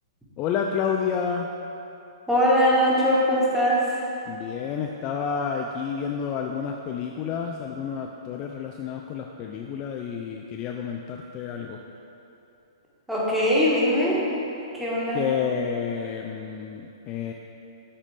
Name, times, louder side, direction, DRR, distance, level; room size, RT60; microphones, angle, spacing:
voice 1, 0.4-1.5 4.3-11.8 15.1-17.3, left 7 dB, 30° left, 1 dB, 0.3 m, -30 dB
voice 2, 2.3-3.8 13.1-14.2 14.7-15.2, equal, 5° right, -7 dB, 1.4 m, -21 dB
7.4 x 4.1 x 3.4 m, 2.8 s
figure-of-eight pair, 115°, 3 cm